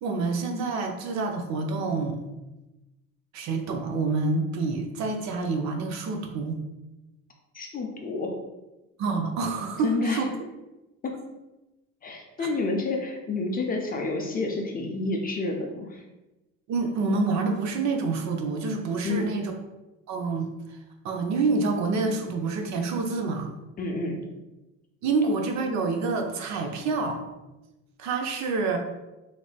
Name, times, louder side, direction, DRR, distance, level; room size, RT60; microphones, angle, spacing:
voice 1, 0.0-2.2 3.3-6.6 9.0-10.3 12.4-12.5 16.7-19.5 20.1-20.5 21.0-23.5 25.0-27.2 28.0-28.8, right 3 dB, 55° right, 4 dB, 0.6 m, -27 dB
voice 2, 7.5-8.3 9.8-10.2 11.0-11.1 12.0-16.0 19.0-19.3 23.8-24.2, left 3 dB, 25° left, 1 dB, 0.5 m, -29 dB
3.2 x 3.0 x 2.4 m, 1.0 s
cardioid pair, 105°, 34 cm